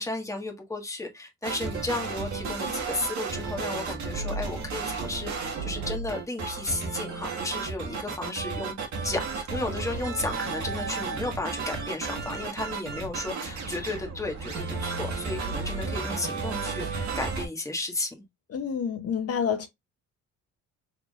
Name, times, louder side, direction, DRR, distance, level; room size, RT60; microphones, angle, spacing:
voice 1, 0.0-8.7 9.0-18.2, left 2 dB, 10° left, 1.5 m, -34 dB
sound 1, 1.4-17.5, right 4 dB, 70° right, 1.6 m, -33 dB
voice 2, 18.5-19.7, left 7 dB, 50° left, 0.7 m, -28 dB
4.7 x 3.6 x 2.4 m
cardioid pair, 90°, 30 cm